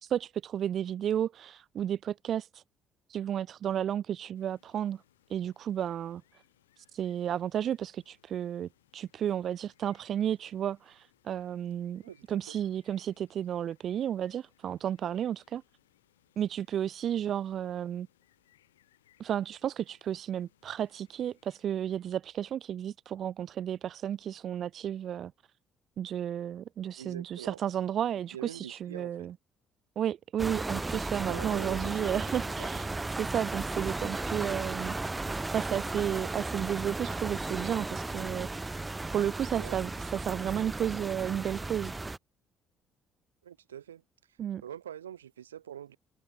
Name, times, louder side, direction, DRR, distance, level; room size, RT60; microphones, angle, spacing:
voice 1, 0.0-2.6 3.1-5.0 5.3-6.2 6.8-12.0 12.3-15.6 16.4-18.1 19.2-25.3 26.0-29.3 30.0-32.9 33.2-35.0 35.5-38.5 39.1-41.9 44.4-44.6, right 10 dB, 55° right, 0.4 m, -32 dB
sound 1, 4.3-21.7, left 13 dB, 85° left, 4.3 m, -69 dB
voice 2, 12.0-12.6 26.9-27.6 28.1-29.3 31.3-32.2 32.6-32.8 39.6-39.8 43.4-46.0, right 10 dB, 90° right, 1.8 m, -45 dB
sound 2, 30.4-42.2, right 2 dB, 20° right, 1.1 m, -35 dB
hypercardioid pair, 50°, 0 cm